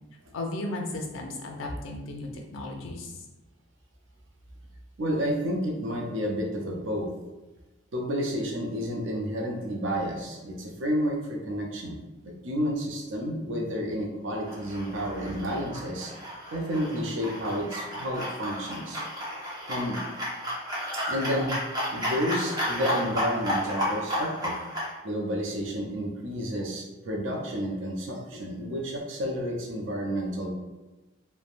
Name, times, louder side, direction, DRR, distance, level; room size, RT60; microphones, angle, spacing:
voice 1, 0.3-3.1, left 2 dB, 90° left, 2 dB, 0.5 m, -35 dB
voice 2, 5.0-7.1 7.9-12.0 12.2-16.1 16.5-19.0 19.7-20.0 21.1-21.6 21.9-24.6 25.0-30.5, equal, 80° right, 0 dB, 0.6 m, -30 dB
sound 1, 14.4-24.9, equal, 20° right, 0.8 m, -32 dB
3.2 x 2.1 x 2.5 m, 1.1 s
head